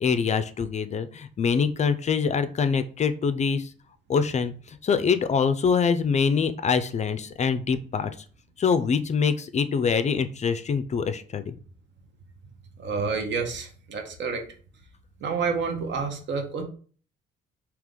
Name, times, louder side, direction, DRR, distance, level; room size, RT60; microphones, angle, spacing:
voice 1, 0.0-3.7 4.1-8.1 8.6-11.6, left 6 dB, 35° left, 12 dB, 0.3 m, -24 dB
voice 2, 12.8-14.4 15.2-16.6, right 5 dB, 65° right, 4 dB, 0.9 m, -29 dB
3.4 x 2.9 x 3.7 m, 0.42 s
cardioid pair, 90°, 20 cm